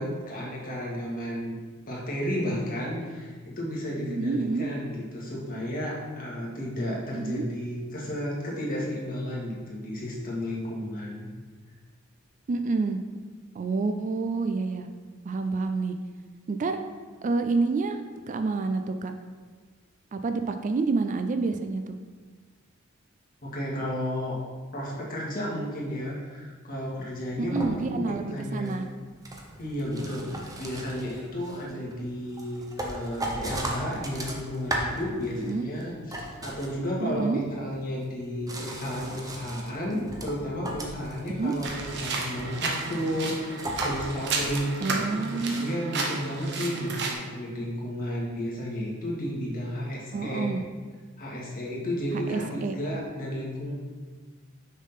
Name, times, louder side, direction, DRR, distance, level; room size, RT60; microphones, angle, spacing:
voice 1, 0.0-1.6 1.9-11.3 23.4-24.4 24.7-28.0 28.3-28.7 29.6-45.1 45.5-50.4 51.2-53.7, equal, 45° left, -4 dB, 1.7 m, -32 dB
voice 2, 4.1-4.7 7.1-7.5 12.5-13.0 13.6-14.9 15.2-16.0 16.5-16.8 17.2-18.0 18.3-19.1 20.1-22.0 27.4-28.9 35.4-35.7 37.0-37.4 41.4-41.5 44.8-45.7 50.1-50.6 52.3-52.7, right 3 dB, 35° right, 7 dB, 0.3 m, -28 dB
sound 1, 26.9-27.0 27.3-28.2 28.7-35.5 35.8-37.1 37.9-44.6, right 1 dB, 15° right, 0.7 m, -37 dB
sound 2, 41.6-47.1, right 4 dB, 55° right, 0.9 m, -32 dB
6.3 x 3.6 x 5.7 m, 1.5 s
head